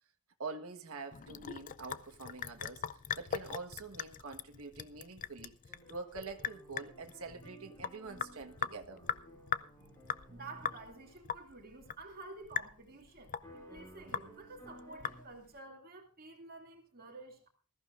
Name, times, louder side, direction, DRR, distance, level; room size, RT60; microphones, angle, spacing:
voice 1, 0.4-2.8 3.2-5.6 5.9-9.0, right 4 dB, 75° right, 1.5 m, -45 dB
Sink (filling or washing) / Drip, 1.1-15.6, left 8 dB, 35° left, 0.5 m, -41 dB
sound 1, 5.7-11.3 13.4-15.2, right 1 dB, 15° left, 5.7 m, -56 dB
voice 2, 10.3-17.5, right 3 dB, 45° right, 2.7 m, -51 dB
20.0 x 14.5 x 2.5 m
head